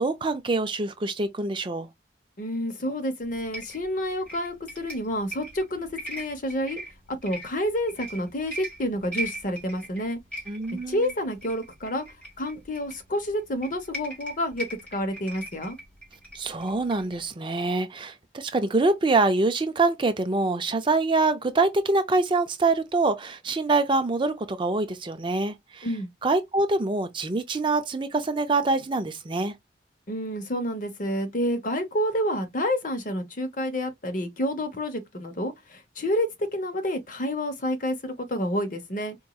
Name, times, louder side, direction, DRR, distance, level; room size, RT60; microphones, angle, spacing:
voice 1, 0.0-1.9 10.5-11.1 16.3-25.9 26.2-29.6, right 3 dB, 25° right, 0.4 m, -25 dB
voice 2, 2.4-6.8 7.2-10.2 10.9-12.0 12.4-15.8 25.8-26.1 30.1-39.2, equal, 45° left, 0.9 m, -29 dB
sound 1, 3.2-17.3, right 1 dB, 5° left, 2.1 m, -40 dB
4.5 x 3.0 x 2.3 m
head